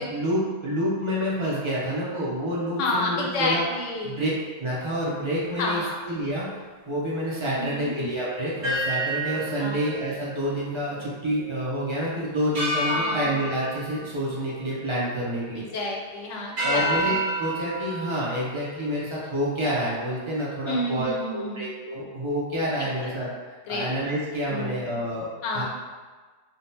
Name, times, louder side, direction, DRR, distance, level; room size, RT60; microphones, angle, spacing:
voice 1, 0.0-3.7 4.0-4.3 4.6-15.6 16.6-23.3 23.7-25.6, equal, 30° right, -7 dB, 0.7 m, -28 dB
voice 2, 2.8-4.2 5.6-6.0 7.6-8.0 9.6-9.8 12.9-13.2 15.6-16.8 20.7-21.7 23.0-23.1 23.7-23.9 24.5-24.9 25.4-25.6, left 2 dB, 80° left, -1 dB, 1.0 m, -29 dB
sound 1, 8.6-11.1 11.4-11.6 12.5-15.1 15.5-16.0 16.6-19.4, right 1 dB, 60° right, 1.6 m, -30 dB
3.7 x 2.4 x 2.7 m, 1.4 s
omnidirectional pair, 1.2 m